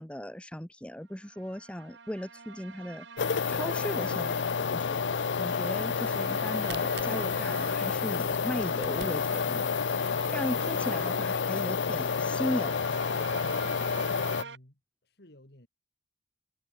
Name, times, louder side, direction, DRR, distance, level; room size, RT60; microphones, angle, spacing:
voice 1, 0.0-3.1 3.5-5.1 5.4-12.8, equal, 5° left, 1.1 m, -37 dB
sound 1, 1.2-14.6, right 5 dB, 80° right, 1.7 m, -46 dB
sound 2, 3.2-14.4, left 5 dB, 90° left, 0.6 m, -29 dB
Camera, 6.5-11.3 11.8-11.9 12.1-12.2 12.7-12.8 13.1-13.5, right 7 dB, 65° right, 6.1 m, -49 dB
voice 2, 14.0-15.7, left 1 dB, 65° left, 3.6 m, -54 dB
head